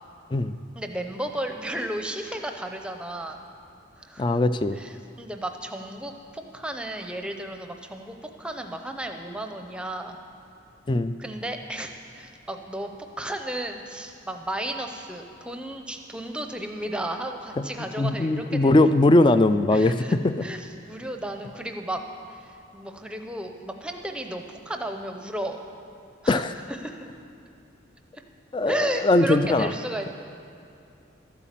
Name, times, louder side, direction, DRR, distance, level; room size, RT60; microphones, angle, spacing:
voice 1, 0.8-3.4 4.0-4.4 4.8-10.2 11.2-12.9 13.2-18.9 19.7-22.0 22.3-25.6 26.2-27.1 28.7-30.1, right 1 dB, 5° right, 5 dB, 0.6 m, -34 dB
voice 2, 4.2-4.8 10.9-11.1 18.0-20.3 26.3-26.5 28.5-29.7, left 2 dB, 25° left, 12 dB, 0.3 m, -20 dB
12.5 x 8.3 x 7.5 m, 2.6 s
head